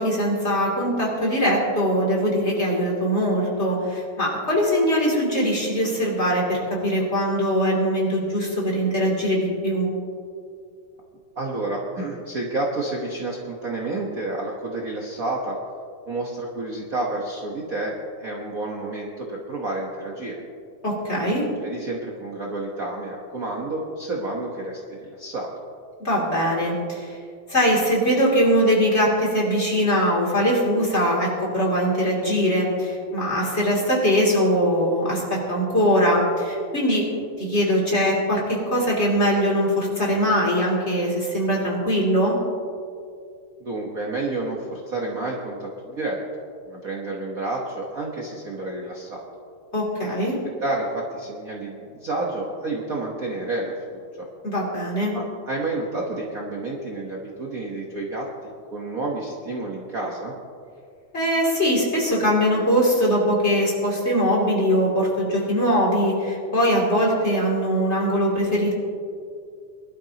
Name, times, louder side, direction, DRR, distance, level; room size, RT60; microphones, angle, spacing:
voice 1, 0.0-9.9 20.8-21.4 26.0-27.2 27.5-42.4 49.7-50.4 54.4-55.1 61.1-68.7, equal, 20° left, -4 dB, 2.9 m, -21 dB
voice 2, 11.4-15.6 16.1-17.9 18.2-20.4 21.6-25.5 43.6-46.2 46.6-49.2 50.6-54.3 55.1-58.3 58.7-60.3, right 2 dB, 60° right, -2 dB, 0.8 m, -30 dB
23.0 x 12.0 x 2.9 m, 2.3 s
omnidirectional pair, 3.5 m